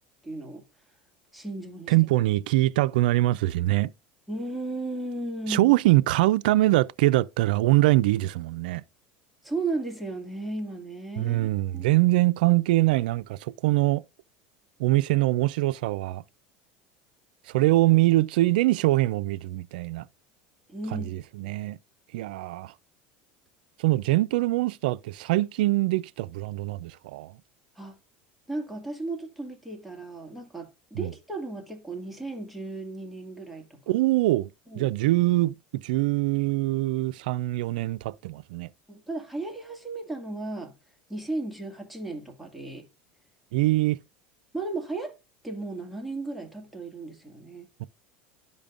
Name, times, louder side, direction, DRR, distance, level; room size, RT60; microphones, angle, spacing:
voice 1, 0.2-0.6 1.3-1.9 4.3-5.7 9.4-11.9 20.7-21.1 21.4-21.5 27.8-28.0 28.5-34.0 34.7-34.9 38.9-40.7 41.1-42.9 44.5-45.2 45.4-47.7, right 2 dB, ahead, 2.0 m, -35 dB
voice 2, 1.9-3.9 5.5-8.8 11.2-14.0 14.8-16.2 17.5-20.1 20.9-21.8 22.1-22.7 23.8-27.3 30.9-31.1 33.9-34.5 34.8-38.7 43.5-44.0, right 18 dB, 85° right, 0.3 m, -23 dB
12.5 x 5.1 x 2.4 m
supercardioid pair, 110°, 5 cm